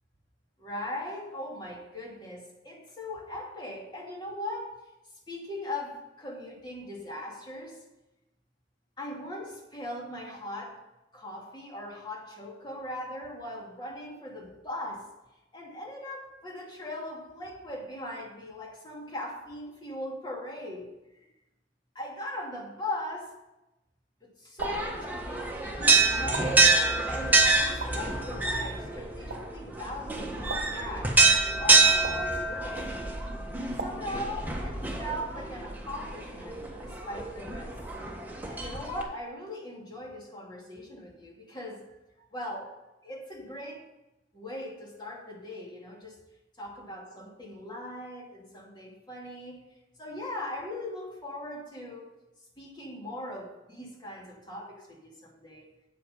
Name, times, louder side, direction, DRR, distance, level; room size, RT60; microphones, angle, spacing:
voice 1, 0.6-4.8 5.3-7.8 9.0-10.8 11.1-15.1 15.5-21.0 21.9-23.3 24.2-25.1 25.8-26.8 27.1-27.4 27.7-31.2 31.5-32.9 33.6-37.8 38.5-42.0 42.3-42.7 43.0-43.8 44.3-46.2 46.6-49.6 50.0-52.2 52.6-55.7, left 1 dB, 25° left, -1 dB, 2.4 m, -39 dB
sound 1, 24.6-39.0, right 3 dB, 10° right, 1.4 m, -26 dB
sound 2, 24.6-25.0 26.3-26.7 27.8-28.1 29.3-29.6 30.5-30.9 32.0-32.4 33.8-34.2, right 3 dB, 70° right, 1.1 m, -38 dB
8.7 x 8.7 x 5.4 m, 0.95 s
head